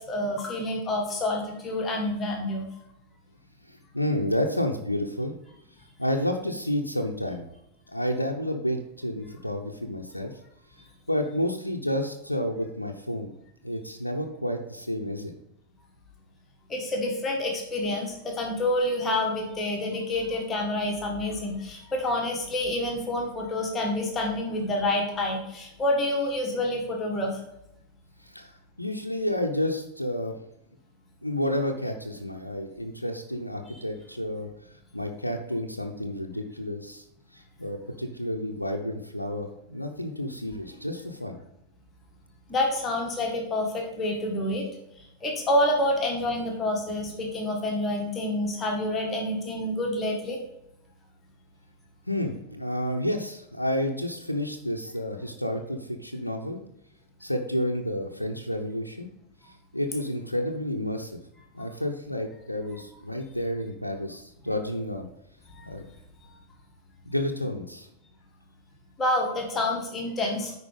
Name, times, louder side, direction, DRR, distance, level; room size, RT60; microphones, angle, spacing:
voice 1, 0.0-2.7 16.7-27.4 42.5-44.7 45.2-50.4 65.5-65.7 69.0-70.5, left 1 dB, 20° left, 0 dB, 1.8 m, -28 dB
voice 2, 3.7-5.3 6.0-7.5 7.9-10.3 11.1-13.3 13.6-15.3 28.2-28.5 28.8-30.4 31.2-34.5 34.9-37.0 37.3-41.4 52.1-56.6 57.2-59.1 59.7-61.2 61.5-65.1 65.6-65.9 67.1-67.9, left 1 dB, 85° left, 3 dB, 0.7 m, -30 dB
9.8 x 4.5 x 5.1 m, 0.82 s
figure-of-eight pair, 90°, 0 cm